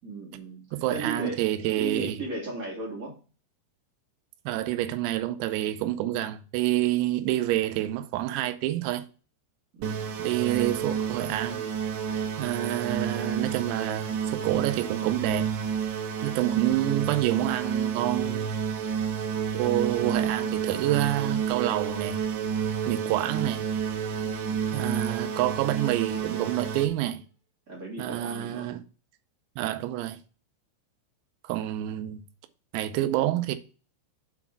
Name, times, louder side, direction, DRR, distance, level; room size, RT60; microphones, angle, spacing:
voice 1, 0.0-0.6 0.9-1.4 1.8-3.2 9.7-10.1 24.2-24.6 27.7-28.7, right 2 dB, 40° right, 1.1 m, -36 dB
voice 2, 0.7-2.2 4.5-9.1 10.2-11.7 12.4-15.5 16.2-18.6 19.6-22.2 22.9-23.6 24.7-27.2 28.0-28.8 29.6-30.2 31.5-32.2 32.7-33.6, right 14 dB, 90° right, 3.5 m, -28 dB
sound 1, 9.8-26.9, right 7 dB, 70° right, 3.0 m, -30 dB
8.1 x 4.1 x 5.9 m
omnidirectional pair, 6.0 m